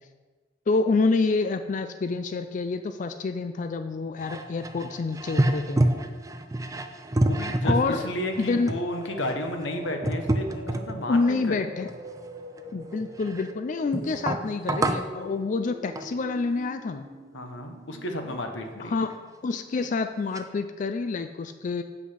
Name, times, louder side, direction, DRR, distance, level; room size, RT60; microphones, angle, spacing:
voice 1, 0.7-5.8 7.6-8.0 8.4-8.7 11.1-11.9 12.7-17.1 18.8-19.2 19.4-21.8, left 3 dB, 40° left, 9 dB, 0.4 m, -27 dB
sound 1, 4.2-11.2 11.8-13.5 13.9-15.2 16.0-16.2 18.7-18.8 19.0-19.2 19.8-19.9 20.3-20.4, right 1 dB, 15° right, 0.4 m, -28 dB
voice 2, 7.3-11.5 17.3-19.0, left 1 dB, 80° left, 4 dB, 1.1 m, -32 dB
sound 2, 7.9-19.5, right 1 dB, 45° right, 0.9 m, -44 dB
8.0 x 5.9 x 5.6 m, 1.4 s
head